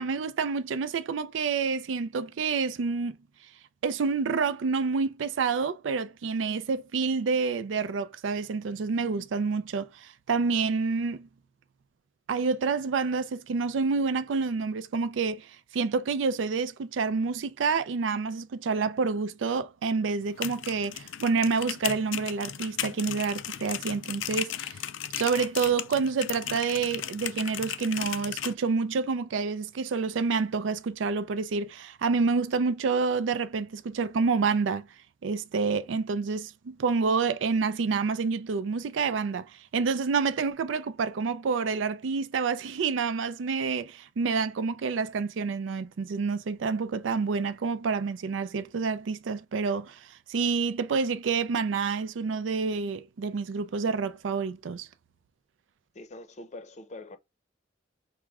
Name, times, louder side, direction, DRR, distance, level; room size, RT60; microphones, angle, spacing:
voice 1, 0.0-3.2 3.8-11.3 12.3-15.5 15.7-24.8 25.1-34.9 35.2-39.5 39.7-50.0 50.3-54.9, right 5 dB, 85° right, 0.4 m, -28 dB
sound 1, 20.2-28.5, left 11 dB, 85° left, 0.4 m, -36 dB
voice 2, 55.9-57.2, left 2 dB, 40° left, 0.6 m, -43 dB
5.9 x 2.1 x 3.5 m
head